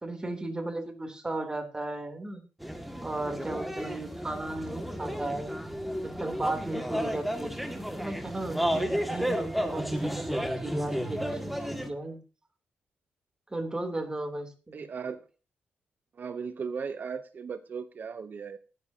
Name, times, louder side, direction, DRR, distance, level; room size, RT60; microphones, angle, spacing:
voice 1, 0.0-2.4 3.0-5.5 6.0-12.2 13.5-14.8, right 2 dB, 20° right, 5 dB, 3.2 m, -35 dB
sound 1, 2.6-11.9, equal, ahead, 1.9 m, -32 dB
voice 2, 14.7-15.3 16.1-18.6, right 6 dB, 50° right, 12 dB, 0.8 m, -37 dB
17.5 x 10.5 x 2.8 m, 0.33 s
cardioid pair, 80°, 4 cm